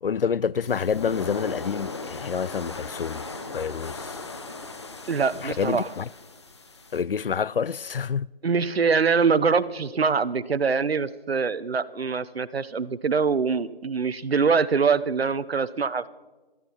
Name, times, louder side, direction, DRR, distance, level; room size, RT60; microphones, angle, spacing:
voice 1, 0.0-3.3 3.5-4.1 5.4-6.1 6.9-8.3, left 6 dB, 65° left, 0.4 m, -28 dB
sound 1, 0.6-7.0, left 3 dB, 30° left, 1.0 m, -38 dB
voice 2, 5.1-5.9 8.4-16.1, right 5 dB, 80° right, 0.8 m, -24 dB
27.0 x 10.0 x 4.4 m
figure-of-eight pair, 170°, 30 cm